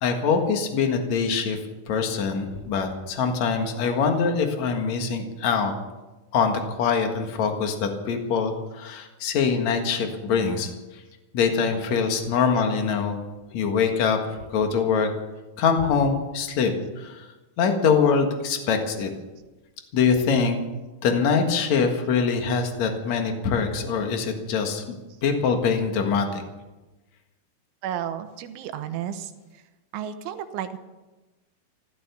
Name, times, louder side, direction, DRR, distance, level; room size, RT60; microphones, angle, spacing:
voice 1, 0.0-1.6 1.9-5.7 6.3-10.7 11.3-13.2 13.5-14.2 14.5-15.1 15.6-16.7 17.0-17.3 17.6-19.1 19.9-20.6 21.0-25.0 25.2-26.4, left 5 dB, 55° left, 4 dB, 2.0 m, -23 dB
voice 2, 27.8-29.3 29.9-30.8, right 10 dB, 80° right, 8 dB, 3.3 m, -32 dB
15.5 x 13.0 x 7.0 m, 1.1 s
omnidirectional pair, 5.6 m